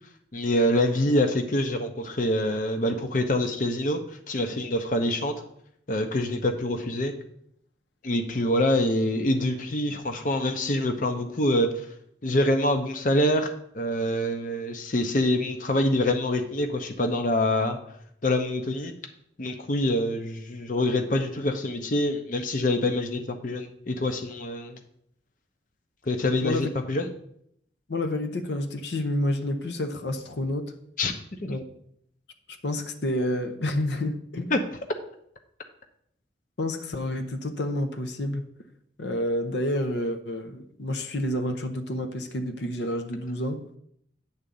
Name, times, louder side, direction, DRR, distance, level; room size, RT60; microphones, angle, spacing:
voice 1, 0.3-4.0 4.3-5.3 5.9-7.1 8.0-11.8 12.2-17.8 18.2-18.9 19.4-24.8 26.1-27.1 31.0-31.1 31.4-31.6 34.5-34.6, left 1 dB, 50° left, 0.7 m, -25 dB
voice 2, 27.9-30.7 31.5-31.7 32.5-34.5 36.6-38.5 39.0-43.6, left 1 dB, 75° left, 0.7 m, -29 dB
9.6 x 3.8 x 7.0 m
head